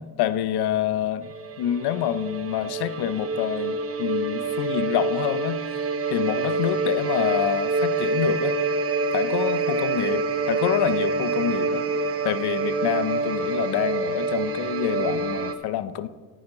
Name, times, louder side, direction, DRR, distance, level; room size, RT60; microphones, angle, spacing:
voice 1, 0.0-8.6 9.1-11.8 12.2-16.1, left 11 dB, 65° left, 14 dB, 0.8 m, -27 dB
sound 1, 1.2-15.6, right 3 dB, 35° right, 0.9 m, -26 dB
14.0 x 9.3 x 3.9 m, 1.4 s
supercardioid pair, 90°, 41 cm